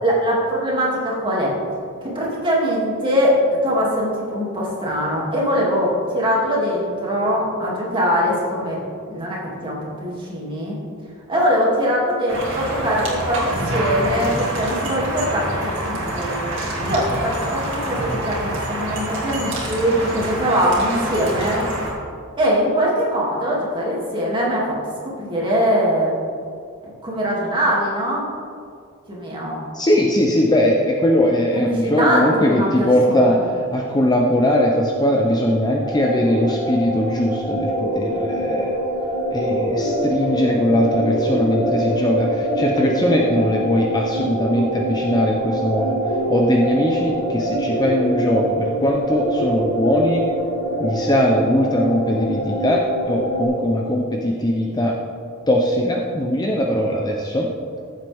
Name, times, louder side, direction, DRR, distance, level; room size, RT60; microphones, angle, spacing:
voice 1, 0.0-1.5 2.0-8.8 9.1-10.8 11.3-16.4 16.8-21.6 22.4-24.6 25.0-26.1 27.0-28.2 29.1-29.6 31.7-33.4, equal, 20° right, -5 dB, 2.5 m, -22 dB
sound 1, 12.3-21.9, right 1 dB, 60° right, 2.4 m, -26 dB
voice 2, 29.7-38.8 39.3-46.0 46.3-50.2 50.8-54.9 55.5-57.5, left 1 dB, 20° left, 0 dB, 0.7 m, -20 dB
sound 2, 35.8-53.5, right 1 dB, 70° left, 2.6 m, -24 dB
14.5 x 7.6 x 3.5 m, 2.3 s
head